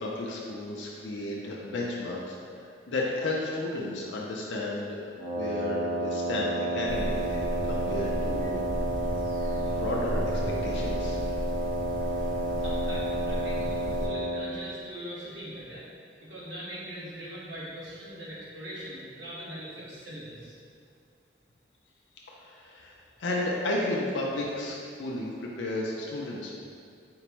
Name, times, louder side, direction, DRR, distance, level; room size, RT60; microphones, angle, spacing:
voice 1, 0.0-5.0 5.3-8.6 9.8-11.2 22.3-26.5, left 2 dB, 75° left, -3 dB, 0.5 m, -33 dB
Wind instrument woodwind instrument, 5.2-14.5, right 2 dB, 65° right, 1.3 m, -31 dB
sound 1, 6.9-14.1, equal, 45° right, 0.6 m, -34 dB
voice 2, 12.6-15.9 16.2-20.6, equal, 80° right, -8 dB, 1.2 m, -41 dB
4.4 x 2.0 x 4.4 m, 2.3 s
head